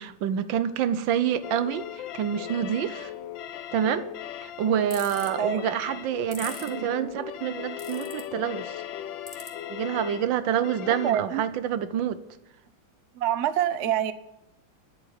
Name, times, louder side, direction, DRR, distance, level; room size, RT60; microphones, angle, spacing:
voice 1, 0.0-3.1 3.7-4.1 4.4-8.8 9.7-12.2, right 9 dB, 70° right, 1.4 m, -27 dB
sound 1, 1.4-11.1, left 10 dB, 70° left, 1.4 m, -38 dB
sound 2, 4.9-5.3 6.3-6.7 7.8-8.2 9.3-9.5, left 2 dB, 25° left, 2.2 m, -38 dB
voice 2, 11.0-11.5 13.1-14.1, right 10 dB, 90° right, 0.6 m, -26 dB
10.5 x 8.3 x 9.4 m
omnidirectional pair, 2.3 m